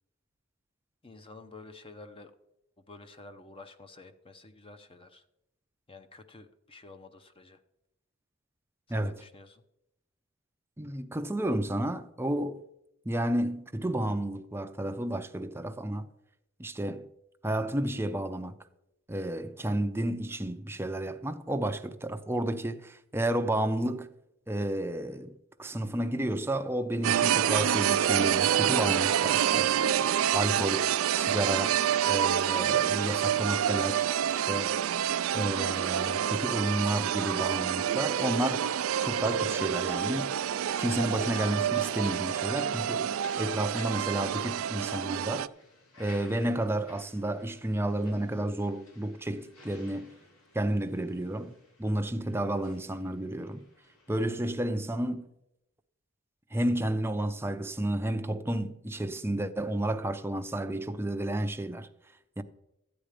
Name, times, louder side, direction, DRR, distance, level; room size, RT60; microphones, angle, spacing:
voice 1, 1.0-2.3 2.8-5.2 5.9-7.6 8.9-9.6 36.0-36.5, left 3 dB, 25° left, 0.7 m, -50 dB
voice 2, 10.8-12.6 13.1-16.1 16.6-17.1 17.4-18.6 19.1-24.1 24.5-29.9 30.3-34.8 35.3-38.7 39.0-40.3 40.8-45.5 46.0-50.1 50.5-53.6 54.1-55.3 56.5-61.9 62.4-62.5, right 1 dB, 10° right, 0.5 m, -31 dB
sound 1, 27.0-45.5, right 9 dB, 65° right, 0.4 m, -27 dB
sound 2, 35.4-54.6, left 2 dB, 80° left, 2.9 m, -57 dB
14.0 x 8.9 x 5.0 m
head